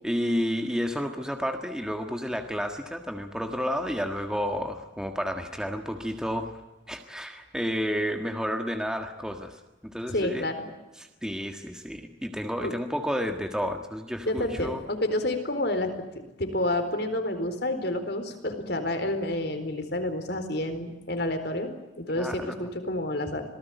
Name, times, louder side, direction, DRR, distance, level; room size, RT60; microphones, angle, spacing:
voice 1, 0.0-6.6 6.9-10.4 11.0-14.8 22.2-22.7, equal, 5° right, 5 dB, 1.6 m, -31 dB
voice 2, 10.1-10.7 12.6-12.7 14.2-15.9 16.4-23.4, left 1 dB, 55° left, 7 dB, 4.2 m, -29 dB
26.5 x 19.0 x 9.3 m, 1.1 s
head